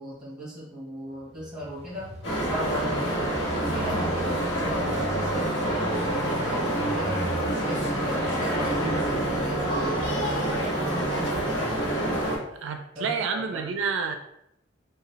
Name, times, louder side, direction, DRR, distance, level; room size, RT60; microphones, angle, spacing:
voice 1, 0.0-3.3 3.7-7.3 7.6-12.0 12.9-13.7, equal, 5° right, -8 dB, 1.4 m, -38 dB
Engine, 1.2-9.2, equal, 30° right, 0.6 m, -39 dB
sound 1, 2.2-12.4, right 1 dB, 70° left, 1.1 m, -27 dB
sound 2, 2.3-12.3, left 2 dB, 15° left, 0.3 m, -43 dB
voice 2, 3.7-4.1 12.5-14.2, right 5 dB, 80° right, 6 dB, 0.3 m, -30 dB
3.0 x 2.2 x 3.9 m, 0.77 s
head